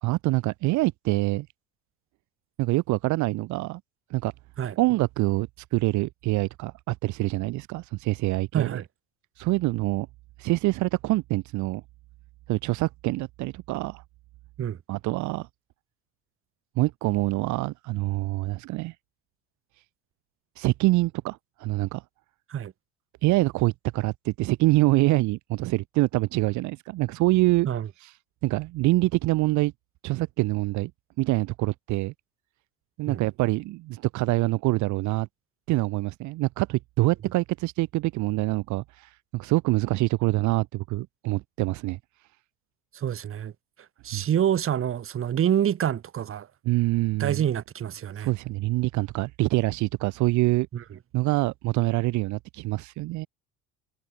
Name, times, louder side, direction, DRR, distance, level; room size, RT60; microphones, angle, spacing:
voice 1, 0.0-1.5 2.6-3.8 4.1-4.3 4.8-8.8 9.4-10.1 10.4-11.8 12.5-14.0 14.9-15.5 16.8-18.9 20.6-22.0 23.2-27.7 28.0-28.1 28.4-29.7 30.0-30.9 31.2-32.1 33.0-35.3 35.7-42.0 44.1-44.2 46.6-47.4 48.2-50.7 51.1-53.3, right 20 dB, 60° right, 1.7 m, -25 dB
voice 2, 8.5-8.8 14.6-14.8 22.5-22.7 27.6-27.9 33.1-33.2 42.9-43.5 44.0-46.5 47.2-48.3 50.7-50.8, right 9 dB, 40° right, 2.6 m, -27 dB
hypercardioid pair, 75°, 33 cm